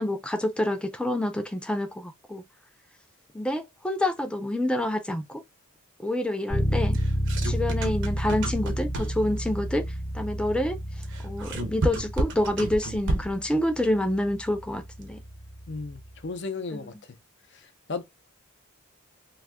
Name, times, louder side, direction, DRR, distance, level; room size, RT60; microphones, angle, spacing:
voice 1, 0.0-2.4 3.3-5.4 6.0-7.0 7.4-9.9 10.1-10.8 11.2-15.2 16.7-16.8, left 1 dB, 5° left, 0.3 m, -27 dB
Bass guitar, 6.5-16.2, equal, 25° left, 0.9 m, -31 dB
sound 1, 6.9-9.4 11.0-13.5, right 2 dB, 55° right, 0.6 m, -31 dB
voice 2, 15.7-16.9 17.9-18.0, left 4 dB, 55° left, 0.6 m, -34 dB
2.6 x 2.3 x 3.4 m
head